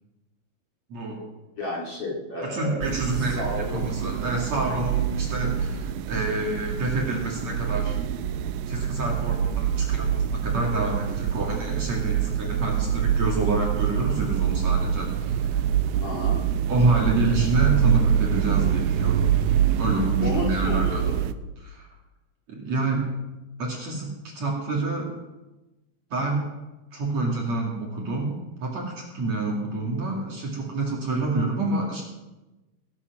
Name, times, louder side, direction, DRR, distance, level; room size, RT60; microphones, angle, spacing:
voice 1, 0.9-1.2 2.4-8.0 8.6-15.6 16.7-19.3 19.8-21.0 21.6-21.9 22.5-23.1 23.6-25.1 26.1-26.5 26.9-28.3 28.6-32.0, right 2 dB, 45° right, -1 dB, 2.8 m, -28 dB
voice 2, 1.6-2.8 3.1-3.9 16.0-16.4 20.2-21.1, left 2 dB, 40° left, -2 dB, 2.8 m, -32 dB
sound 1, 2.8-21.3, right 9 dB, 90° right, 2.0 m, -25 dB
21.5 x 10.0 x 6.0 m, 1.1 s
omnidirectional pair, 5.0 m